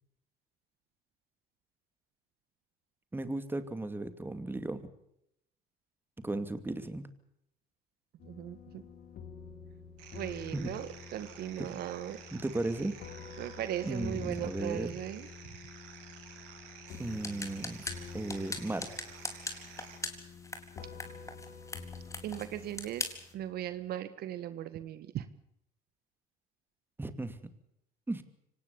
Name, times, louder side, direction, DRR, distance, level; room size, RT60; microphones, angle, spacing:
voice 1, 3.1-4.9 6.2-7.1 10.5-10.7 11.6-11.7 12.3-13.0 13.8-15.0 17.0-18.9 27.0-27.5 28.1-28.2, right 2 dB, 10° right, 10 dB, 2.6 m, -36 dB
sound 1, 8.2-23.7, left 5 dB, 55° left, 4.3 m, -48 dB
voice 2, 8.2-8.8 10.1-12.2 13.4-15.3 22.2-23.0 23.3-25.2, right 11 dB, 60° right, 13 dB, 1.6 m, -38 dB
sound 2, 10.0-20.0, right 8 dB, 85° right, 7.6 m, -52 dB
sound 3, 16.9-23.3, left 3 dB, 15° left, 4.1 m, -42 dB
25.0 x 19.0 x 7.1 m, 0.77 s
supercardioid pair, 95°, 18 cm